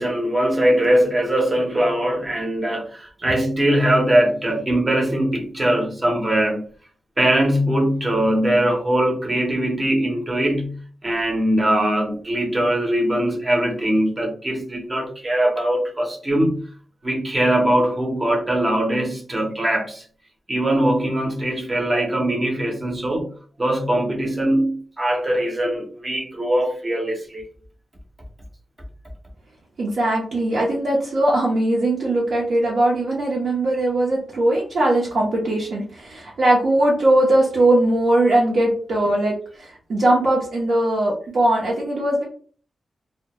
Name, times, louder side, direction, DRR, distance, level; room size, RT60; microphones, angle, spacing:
voice 1, 0.0-6.6 7.2-16.7 17.0-20.0 20.5-23.3 23.6-27.4, right 1 dB, 20° right, 0.7 m, -21 dB
voice 2, 29.8-42.2, right 1 dB, 65° right, 0.7 m, -20 dB
2.2 x 2.1 x 2.8 m
wide cardioid pair, 150°, 0 cm